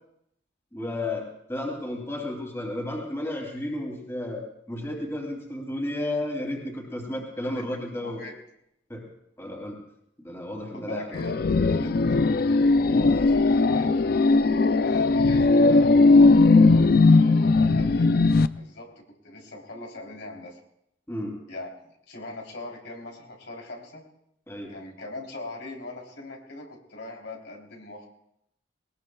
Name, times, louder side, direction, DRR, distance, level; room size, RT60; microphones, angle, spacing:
voice 1, 0.7-8.2 8.9-9.0 9.4-9.8 10.2-11.1 17.7-17.9 21.1-21.4 24.5-24.8, left 1 dB, 15° left, 0 dB, 2.9 m, -33 dB
voice 2, 8.0-8.4 10.7-14.0 14.8-18.1 18.6-20.6 21.5-21.7 22.1-24.1 24.7-28.1, left 2 dB, 75° left, 0 dB, 3.5 m, -40 dB
sound 1, 11.1-18.5, left 3 dB, 50° left, 0.4 m, -18 dB
21.0 x 19.5 x 2.3 m, 0.76 s
head